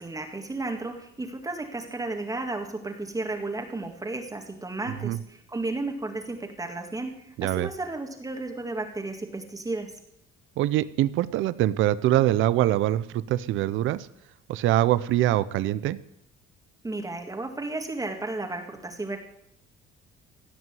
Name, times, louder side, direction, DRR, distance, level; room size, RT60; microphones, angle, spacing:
voice 1, 0.0-9.9 16.8-19.2, right 2 dB, 15° right, 3 dB, 2.0 m, -33 dB
voice 2, 10.6-14.1 14.5-16.0, right 14 dB, 75° right, 16 dB, 0.7 m, -24 dB
16.5 x 6.0 x 9.2 m, 0.75 s
cardioid pair, 100°, 21 cm